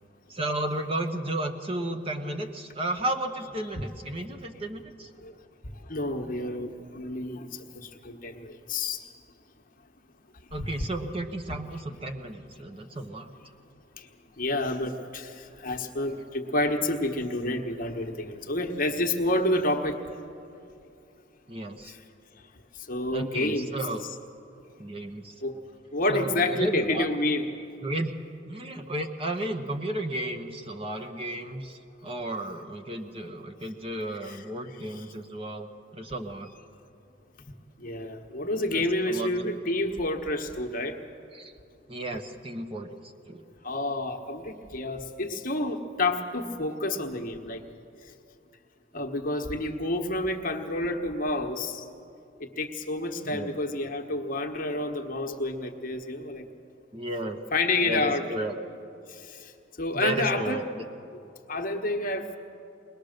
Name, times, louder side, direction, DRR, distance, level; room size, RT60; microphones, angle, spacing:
voice 1, 0.3-5.1 10.5-13.3 21.5-22.0 23.1-24.0 24.8-25.3 26.1-27.1 27.8-28.1 28.5-36.5 38.7-39.5 41.3-41.5 41.9-43.4 53.2-53.5 56.9-57.4 57.8-58.5 59.9-60.8, right 1 dB, 30° right, 4 dB, 1.0 m, -33 dB
voice 2, 5.6-9.0 14.0-14.1 14.4-20.0 21.8-22.0 22.7-23.7 25.4-25.5 25.9-27.5 34.2-34.4 34.8-35.0 37.8-41.0 43.6-47.6 48.0-48.1 48.9-51.8 52.4-56.4 57.5-58.3 59.1-59.5 59.8-60.6 61.5-62.4, left 2 dB, 45° left, 4 dB, 1.2 m, -29 dB
22.0 x 19.5 x 6.6 m, 2.6 s
head